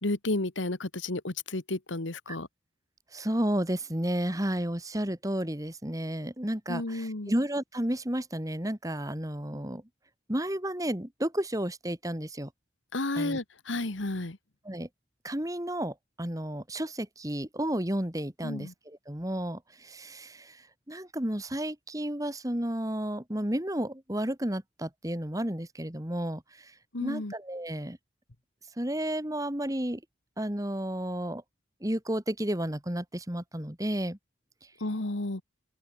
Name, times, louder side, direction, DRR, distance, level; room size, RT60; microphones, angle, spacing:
voice 1, 0.0-2.5 6.7-7.3 12.9-14.4 18.4-18.7 26.9-27.3 34.8-35.4, left 2 dB, 80° left, 1.7 m, -32 dB
voice 2, 3.1-9.8 10.3-12.5 13.2-13.4 14.7-14.9 15.2-26.7 27.0-28.0 28.8-30.0 30.4-31.4 31.8-34.2, right 1 dB, 20° right, 2.0 m, -32 dB
open air
head